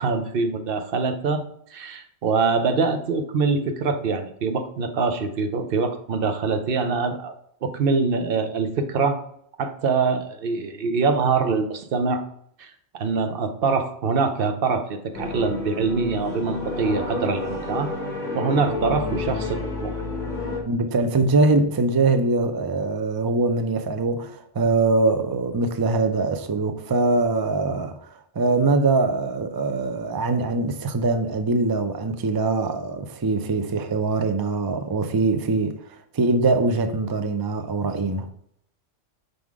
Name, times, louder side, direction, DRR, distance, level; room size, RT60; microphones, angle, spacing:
voice 1, 0.0-1.4 1.7-9.2 9.6-12.2 12.6-17.9 18.3-19.9, right 4 dB, 55° right, 0.9 m, -24 dB
sound 1, 15.1-20.6, left 3 dB, 40° left, 1.3 m, -30 dB
voice 2, 20.7-35.7 36.1-38.3, right 3 dB, 35° right, 0.3 m, -22 dB
5.3 x 3.8 x 4.6 m
omnidirectional pair, 1.3 m